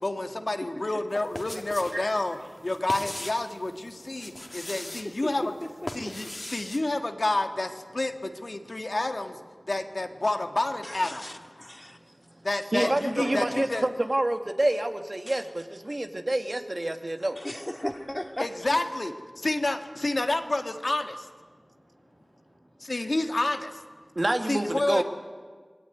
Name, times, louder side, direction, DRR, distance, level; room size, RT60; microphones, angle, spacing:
voice 1, 0.0-5.5 5.9-9.4 9.7-11.7 12.4-13.9 18.4-21.3 22.9-23.7 24.5-25.0, left 2 dB, 65° left, 5 dB, 1.8 m, -29 dB
sound 1, 1.1-2.0 2.3-3.5 4.1-5.1 5.6-6.8, left 1 dB, 40° left, 2.3 m, -39 dB
voice 2, 4.2-4.6 12.7-17.4 24.2-25.0, right 1 dB, 50° right, 6 dB, 1.9 m, -28 dB
voice 3, 10.8-12.0 12.8-13.6 15.3-15.4 17.4-18.5, left 1 dB, 20° left, 4 dB, 2.4 m, -36 dB
26.0 x 21.0 x 9.5 m, 1.5 s
wide cardioid pair, 50°, 0 cm